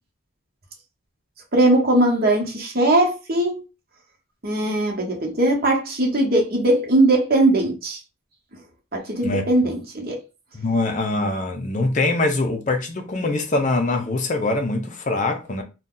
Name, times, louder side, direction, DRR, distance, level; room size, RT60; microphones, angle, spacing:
voice 1, 1.5-3.6 4.4-8.0 8.9-10.2, right 1 dB, 45° right, 1.0 m, -20 dB
voice 2, 10.5-15.6, left 2 dB, 35° left, 0.5 m, -23 dB
2.7 x 2.3 x 3.7 m
head